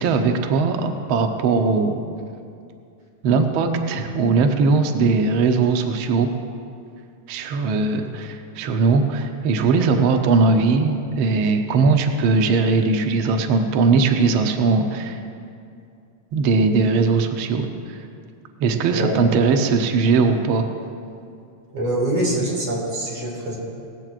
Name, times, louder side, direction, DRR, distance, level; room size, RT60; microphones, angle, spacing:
voice 1, 0.0-2.0 3.2-6.3 7.3-15.2 16.3-18.1 18.6-20.7, right 4 dB, 85° right, 5 dB, 1.1 m, -19 dB
voice 2, 21.7-23.6, right 1 dB, 55° right, -4 dB, 3.9 m, -24 dB
18.5 x 15.0 x 2.5 m, 2.4 s
omnidirectional pair, 3.4 m